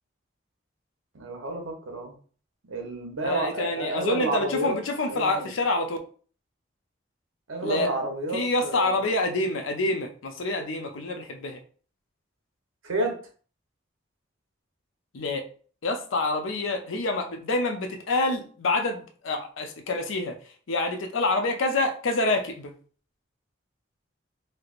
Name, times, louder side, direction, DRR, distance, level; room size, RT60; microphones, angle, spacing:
voice 1, 1.1-2.1 2.7-4.8 5.1-5.5 7.5-9.1 12.8-13.2, right 2 dB, 90° right, 2 dB, 0.9 m, -30 dB
voice 2, 3.2-6.0 7.6-7.9 8.3-11.6 15.1-15.4 15.8-20.4 20.7-22.7, left 2 dB, 85° left, 5 dB, 0.5 m, -27 dB
3.2 x 2.8 x 2.4 m, 0.43 s
head